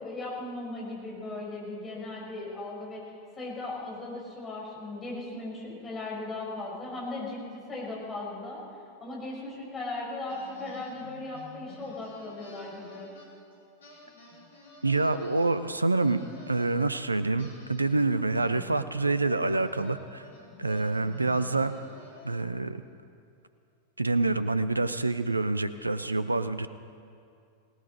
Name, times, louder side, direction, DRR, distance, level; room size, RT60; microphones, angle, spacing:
voice 1, 0.0-3.0 3.3-8.6 9.0-13.1, left 2 dB, 20° left, -3 dB, 5.4 m, -37 dB
sound 1, 10.3-13.5 13.8-16.9 17.4-22.6, left 2 dB, 70° left, 4.2 m, -50 dB
voice 2, 14.8-16.2 16.5-20.2 20.6-21.7 22.2-22.8 24.0-26.7, right 3 dB, 80° right, 13 dB, 0.5 m, -27 dB
19.0 x 18.0 x 4.2 m, 2.3 s
figure-of-eight pair, 90°, 0 cm